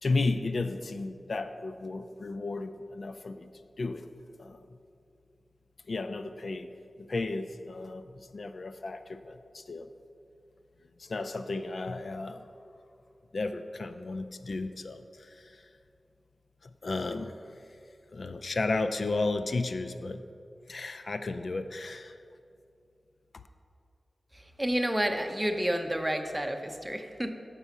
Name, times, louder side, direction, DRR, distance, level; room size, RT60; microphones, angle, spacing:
voice 1, 0.0-3.5 3.8-4.1 4.4-4.6 5.9-9.9 11.0-12.5 13.3-15.7 16.6-17.6 18.1-20.2 20.7-22.2, left 3 dB, 65° left, 9 dB, 0.4 m, -34 dB
voice 2, 24.6-27.3, equal, 10° right, 6 dB, 0.7 m, -30 dB
6.7 x 5.5 x 7.2 m, 2.4 s
wide cardioid pair, 65°, 0 cm